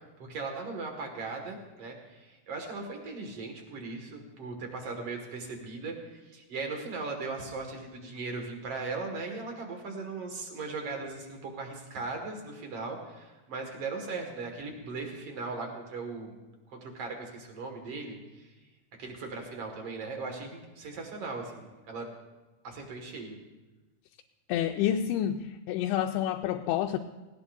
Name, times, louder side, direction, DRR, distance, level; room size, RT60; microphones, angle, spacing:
voice 1, 0.0-16.4 16.7-18.5 19.0-22.1 22.6-23.4, right 3 dB, 45° right, 2 dB, 2.5 m, -38 dB
voice 2, 24.5-27.0, left 10 dB, 85° left, 3 dB, 2.6 m, -29 dB
18.5 x 18.0 x 2.7 m, 1.1 s
omnidirectional pair, 4.5 m